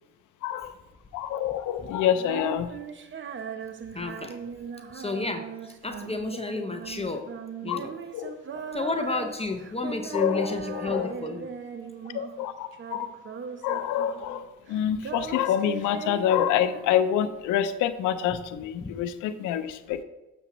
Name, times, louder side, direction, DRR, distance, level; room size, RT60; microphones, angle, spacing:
voice 1, 0.4-0.7 1.1-2.7 7.7-7.8 8.1-8.3 10.1-11.1 12.1-13.1 13.6-20.0, left 10 dB, 85° left, 10 dB, 0.5 m, -27 dB
Female singing, 2.1-12.5 12.7-14.4 14.7-17.3, right 6 dB, 40° right, 0.7 m, -39 dB
voice 2, 3.9-4.4 4.9-5.5 5.8-7.3 7.6-7.9 8.7-11.5 18.8-18.9, left 3 dB, 20° left, 5 dB, 0.6 m, -31 dB
6.9 x 6.9 x 3.0 m, 1.0 s
cardioid pair, 90°, 30 cm